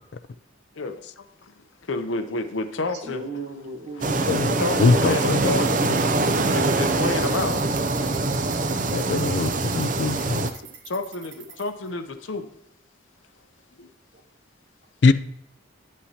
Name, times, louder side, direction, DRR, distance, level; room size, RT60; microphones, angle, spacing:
voice 1, 0.8-3.2 4.6-5.7 6.5-7.6 9.0-9.2 10.9-12.5 13.8-13.9, left 3 dB, 80° left, 0.8 m, -30 dB
voice 2, 3.0-4.6 5.4-7.8 10.6-10.7 14.1-14.2, right 2 dB, 60° right, 1.5 m, -37 dB
sound 1, 4.0-10.5, right 2 dB, 40° right, 0.5 m, -23 dB
voice 3, 4.8-5.4 8.9-10.5 15.0-15.1, left 4 dB, 60° left, 0.4 m, -21 dB
sound 2, 5.4-11.9, right 8 dB, 75° right, 1.1 m, -45 dB
11.0 x 8.4 x 2.9 m
head